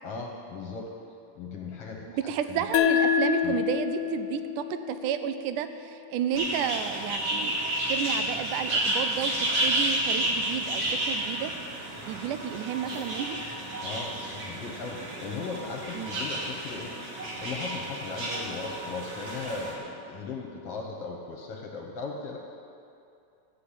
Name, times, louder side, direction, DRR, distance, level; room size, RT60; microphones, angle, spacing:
voice 1, 0.0-0.9 1.4-2.6 3.4-3.6 10.8-11.0 13.8-17.0 17.4-22.4, left 4 dB, 60° left, 0 dB, 1.8 m, -37 dB
voice 2, 2.1-7.6 7.9-11.5 12.1-13.4 15.9-16.2, right 9 dB, 85° right, 10 dB, 2.1 m, -31 dB
sound 1, 2.7-5.9, left 9 dB, 80° left, 2.0 m, -27 dB
sound 2, 6.3-19.7, right 1 dB, 50° right, 2.7 m, -31 dB
14.0 x 5.7 x 8.5 m, 2.6 s
omnidirectional pair, 3.6 m